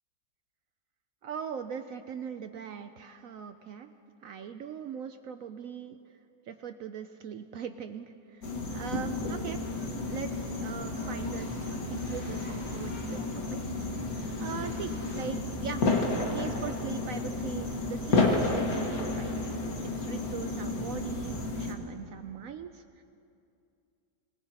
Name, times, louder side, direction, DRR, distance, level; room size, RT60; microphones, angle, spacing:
voice 1, 1.2-3.9 4.2-6.0 6.5-8.4 8.7-9.6 10.1-13.6 13.9-15.8 16.1-19.3 19.8-23.0, right 7 dB, 75° right, 8 dB, 0.8 m, -40 dB
sound 1, 8.4-21.7, left 3 dB, 55° left, 1.9 m, -31 dB
sound 2, 9.8-15.2, equal, 25° right, 5.7 m, -52 dB
25.0 x 20.0 x 2.9 m, 2.6 s
omnidirectional pair, 1.9 m